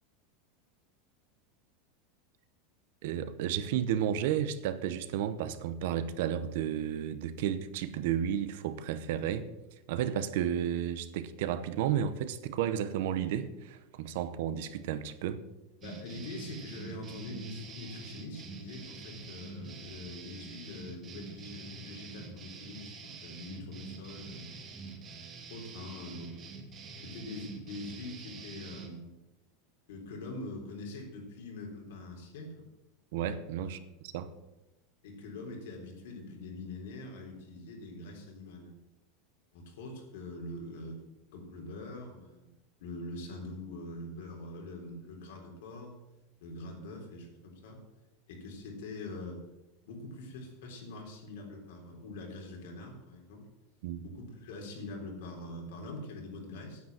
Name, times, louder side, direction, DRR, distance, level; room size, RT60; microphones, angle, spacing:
voice 1, 3.0-9.5 9.9-15.4 33.1-34.3 53.8-54.1, right 9 dB, 65° right, 13 dB, 0.9 m, -32 dB
voice 2, 15.8-24.5 25.3-26.4 27.0-29.1 29.9-32.7 33.6-33.7 35.0-38.7 39.5-41.0 41.3-42.5 42.8-45.9 46.4-47.8 48.3-49.4 49.8-53.4 54.0-56.8, left 2 dB, 75° left, 1 dB, 3.7 m, -44 dB
sound 1, 15.8-28.9, right 4 dB, 25° right, 1.6 m, -46 dB
9.5 x 8.2 x 7.6 m, 0.99 s
supercardioid pair, 170°, 0 cm